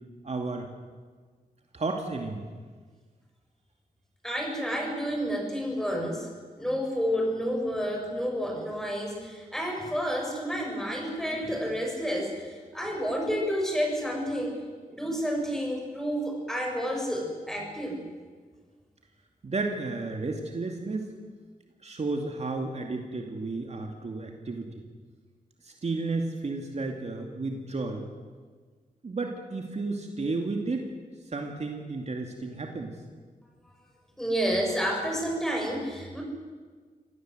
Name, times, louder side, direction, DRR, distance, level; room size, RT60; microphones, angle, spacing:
voice 1, 0.2-0.7 1.7-2.5 19.4-21.1 21.8-24.8 25.6-28.1 29.0-30.9 31.3-33.0, right 3 dB, 45° right, 3 dB, 2.5 m, -32 dB
voice 2, 4.2-6.3 6.6-14.6 14.9-18.0 34.2-36.2, equal, 5° left, 0 dB, 7.3 m, -30 dB
26.0 x 17.5 x 7.9 m, 1.5 s
wide cardioid pair, 85°, 15 cm